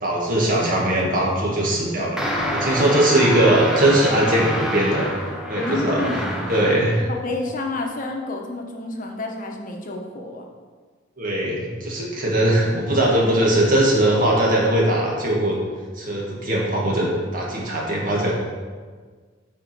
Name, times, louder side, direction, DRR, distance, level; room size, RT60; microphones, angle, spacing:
voice 1, 0.0-5.1 5.5-6.1 6.5-7.1 11.2-15.6 15.9-18.3, right 1 dB, 45° right, -3 dB, 2.0 m, -20 dB
sound 1, 2.2-7.0, equal, 5° right, 1.0 m, -26 dB
voice 2, 5.6-6.3 7.1-10.5, left 2 dB, 45° left, 1 dB, 1.1 m, -29 dB
9.0 x 4.9 x 4.6 m, 1.5 s
head